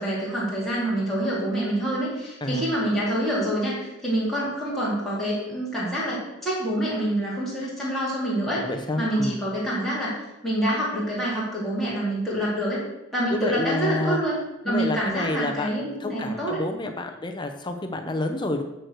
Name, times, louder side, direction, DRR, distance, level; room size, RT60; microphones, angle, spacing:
voice 1, 0.0-8.6 9.0-10.1 10.4-12.8 13.1-14.3 14.6-16.6, right 1 dB, ahead, -8 dB, 3.9 m, -26 dB
voice 2, 2.4-2.7 8.6-9.4 13.3-14.2 14.6-18.6, left 2 dB, 20° left, 5 dB, 0.7 m, -29 dB
13.0 x 4.6 x 6.5 m, 0.98 s
head